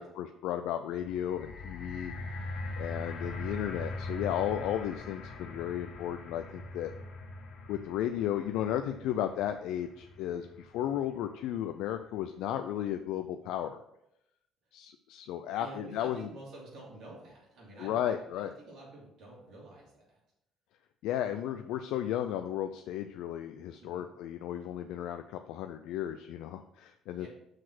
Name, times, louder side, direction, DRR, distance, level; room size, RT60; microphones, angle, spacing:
voice 1, 0.0-2.1 2.8-6.9 7.7-13.8 14.7-16.2 17.8-18.5 21.0-27.3, left 11 dB, 90° left, 7 dB, 0.4 m, -34 dB
sound 1, 0.9-11.1 11.9-12.0, left 2 dB, 40° left, 0.9 m, -42 dB
voice 2, 15.6-20.2 21.2-21.4 23.8-24.1 27.1-27.3, right 2 dB, 55° right, -5 dB, 3.2 m, -50 dB
6.0 x 4.9 x 6.1 m, 0.81 s
cardioid pair, 180°, 0 cm